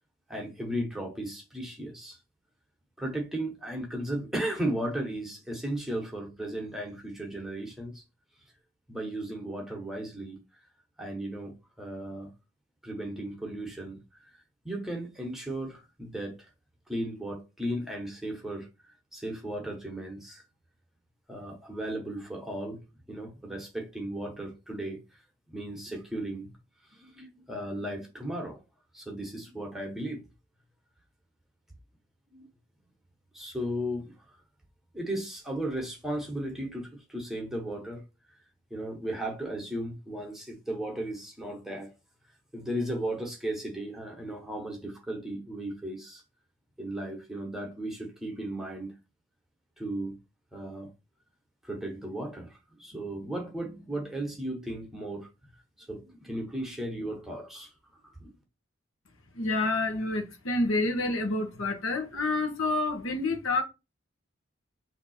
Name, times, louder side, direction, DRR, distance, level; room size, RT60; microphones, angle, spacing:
voice 1, 0.3-2.2 3.0-8.0 8.9-10.4 11.0-12.3 12.8-14.3 14.6-16.5 16.9-18.7 19.1-20.4 21.3-22.8 23.1-25.0 25.5-26.5 26.9-28.6 28.9-30.2 32.3-32.5 33.3-34.1 34.9-38.0 38.7-41.9 42.5-46.2 46.8-48.9 49.8-50.2 50.5-50.9 51.6-55.3 55.8-57.7 58.2-58.3, right 1 dB, ahead, 1.0 m, -35 dB
voice 2, 59.3-63.6, left 2 dB, 85° left, 1.0 m, -28 dB
3.5 x 2.7 x 4.2 m
head